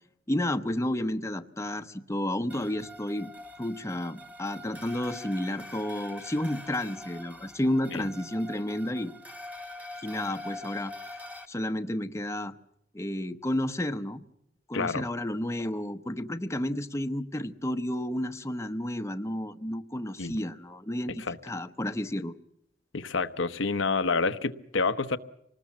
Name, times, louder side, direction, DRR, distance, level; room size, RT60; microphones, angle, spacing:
voice 1, 0.3-3.3 3.6-9.1 10.0-10.9 11.5-12.5 12.9-14.2 14.7-22.3, left 1 dB, 15° left, 0.9 m, -31 dB
sound 1, 2.5-11.5, left 1 dB, 10° right, 1.6 m, -44 dB
voice 2, 14.7-15.1 20.2-20.4 21.2-21.4 22.9-25.2, left 4 dB, 85° left, 1.0 m, -28 dB
25.5 x 19.5 x 7.3 m
head